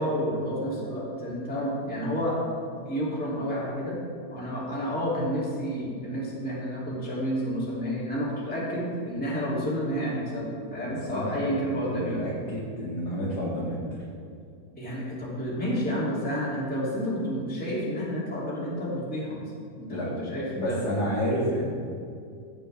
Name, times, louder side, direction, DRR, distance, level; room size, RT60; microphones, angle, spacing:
voice 1, 0.0-2.4 2.8-4.0 4.3-12.2 14.8-19.4 19.8-20.8, equal, 5° left, -7 dB, 2.2 m, -30 dB
voice 2, 10.8-11.5 11.8-13.8 19.9-20.1 20.5-21.6, equal, 40° left, -9 dB, 2.2 m, -30 dB
15.5 x 6.9 x 3.4 m, 2.4 s
omnidirectional pair, 3.3 m